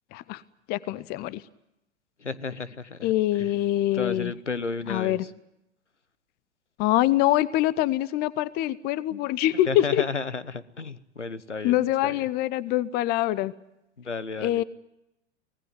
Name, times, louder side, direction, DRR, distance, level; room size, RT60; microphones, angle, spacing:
voice 1, 0.1-0.4 0.7-1.4 3.0-4.3 4.9-5.2 6.8-10.0 11.6-13.5 14.4-14.6, left 14 dB, 30° left, 20 dB, 0.8 m, -24 dB
voice 2, 2.2-3.5 3.9-5.3 9.1-9.2 9.5-12.3 14.0-14.6, left 4 dB, 85° left, 16 dB, 1.2 m, -33 dB
25.0 x 18.5 x 9.3 m, 0.89 s
figure-of-eight pair, 100°, 35 cm